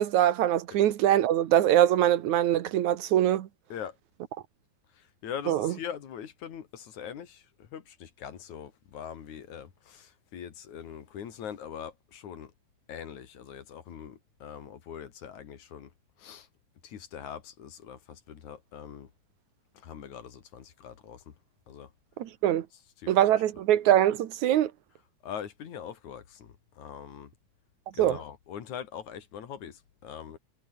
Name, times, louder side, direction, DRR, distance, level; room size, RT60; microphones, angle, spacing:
voice 1, 0.0-3.5 5.5-5.7 22.2-22.7 23.1-24.7 28.0-28.2, right 12 dB, 75° right, 2.6 m, -23 dB
voice 2, 5.2-7.4 7.7-12.5 12.9-15.9 16.2-16.5 16.8-19.1 19.8-21.2 21.7-21.9 23.0-23.1 25.2-27.3 28.0-30.4, left 8 dB, 75° left, 3.5 m, -42 dB
omnidirectional pair, 3.4 m